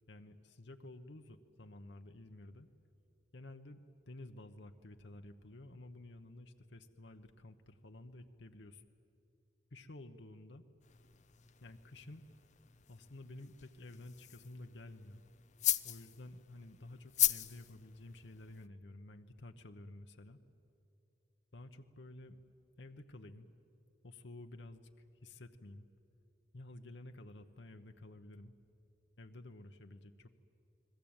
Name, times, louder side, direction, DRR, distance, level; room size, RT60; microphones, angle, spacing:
voice 1, 0.0-2.7 3.3-8.8 9.7-10.6 11.6-12.2 12.9-15.2 15.8-20.4 21.5-22.4 22.8-23.5 24.0-24.9 25.2-25.9 26.5-28.5 29.2-30.3, left 2 dB, 75° left, 6 dB, 1.1 m, -52 dB
sound 1, 10.8-18.7, left 13 dB, 40° left, 0.6 m, -39 dB
30.0 x 21.0 x 8.9 m, 2.7 s
head